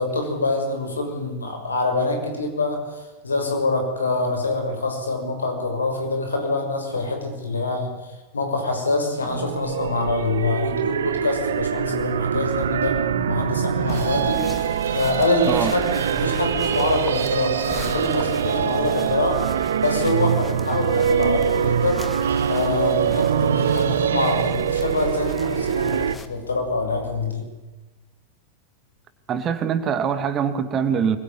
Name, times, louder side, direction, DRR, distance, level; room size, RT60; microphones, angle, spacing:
voice 1, 0.0-7.9 8.3-19.4 19.8-22.0 22.5-27.4, left 2 dB, 75° left, 4 dB, 6.3 m, -25 dB
sound 1, 9.3-26.2, right 8 dB, 65° right, 0.9 m, -24 dB
sound 2, 13.9-26.3, left 3 dB, 10° left, 2.1 m, -39 dB
Bass guitar, 21.0-27.3, left 12 dB, 50° left, 7.2 m, -41 dB
voice 2, 29.3-31.2, right 7 dB, 30° right, 10 dB, 2.5 m, -23 dB
24.5 x 22.5 x 9.9 m, 1.2 s
figure-of-eight pair, 90°, 0 cm